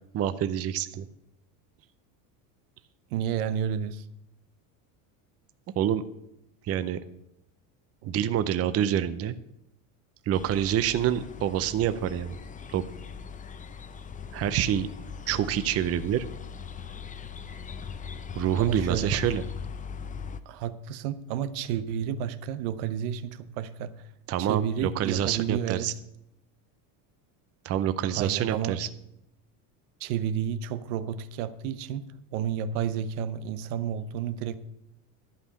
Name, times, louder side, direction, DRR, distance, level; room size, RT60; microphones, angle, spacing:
voice 1, 0.1-1.1 5.8-6.0 6.6-7.0 8.1-9.4 10.3-12.4 12.7-12.8 14.3-14.9 15.3-16.2 18.3-19.4 24.3-25.9 27.6-28.9, right 10 dB, 35° right, 12 dB, 0.6 m, -27 dB
voice 2, 3.1-4.1 8.0-8.2 18.6-19.2 20.5-24.1 24.4-25.9 28.2-28.8 30.0-32.0 32.3-34.6, right 9 dB, 75° right, 12 dB, 0.9 m, -31 dB
sound 1, 10.3-20.4, left 6 dB, 20° left, 0.5 m, -40 dB
11.5 x 5.4 x 8.5 m, 0.83 s
supercardioid pair, 110°, 45 cm